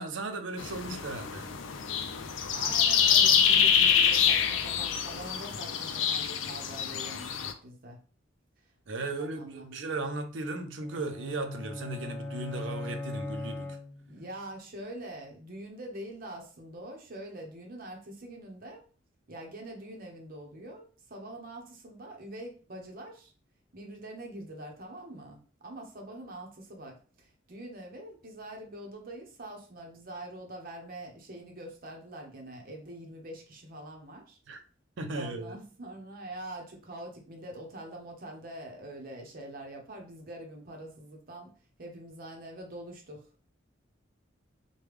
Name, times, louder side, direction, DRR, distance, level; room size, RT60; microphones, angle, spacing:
voice 1, 0.0-1.5 8.9-13.8 34.5-34.6 35.0-35.6, right 2 dB, 70° right, 0.5 m, -36 dB
sound 1, 0.6-7.5, left 7 dB, 80° left, 0.4 m, -26 dB
voice 2, 2.5-8.0 9.0-9.7 14.1-18.8 19.3-23.3 23.7-34.4 35.1-41.5 41.8-43.5, right 1 dB, 50° right, 0.8 m, -44 dB
sound 2, 10.8-14.3, left 2 dB, 10° left, 0.3 m, -39 dB
3.3 x 2.2 x 3.2 m
head